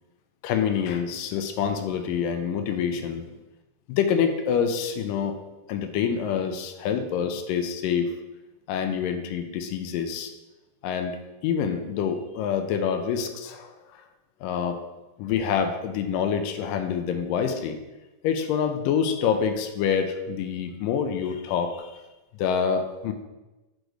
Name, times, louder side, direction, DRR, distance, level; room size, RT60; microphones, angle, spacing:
voice 1, 0.4-3.3 3.9-5.4 5.7-8.1 8.7-10.3 10.8-11.2 11.4-14.0 14.4-14.8 15.2-17.8 18.2-21.9 22.4-23.1, left 7 dB, 80° left, 7 dB, 2.2 m, -26 dB
6.2 x 5.0 x 3.3 m, 1.1 s
omnidirectional pair, 4.0 m